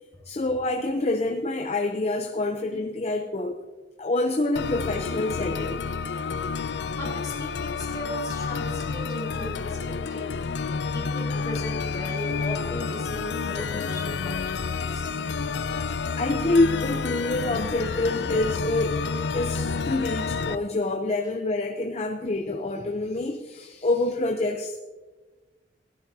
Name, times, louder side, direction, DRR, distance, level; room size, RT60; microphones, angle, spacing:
voice 1, 0.3-3.6 4.0-5.8 16.2-19.1 19.3-24.8, left 2 dB, 35° left, 4 dB, 0.6 m, -26 dB
sound 1, 4.6-20.6, left 5 dB, 80° left, 0.5 m, -29 dB
voice 2, 7.0-10.3 10.9-15.2, left 1 dB, 20° left, -3 dB, 2.4 m, -37 dB
Human voice, 11.4-19.4, right 1 dB, 85° right, 3.6 m, -51 dB
16.0 x 12.5 x 2.8 m, 1.3 s
head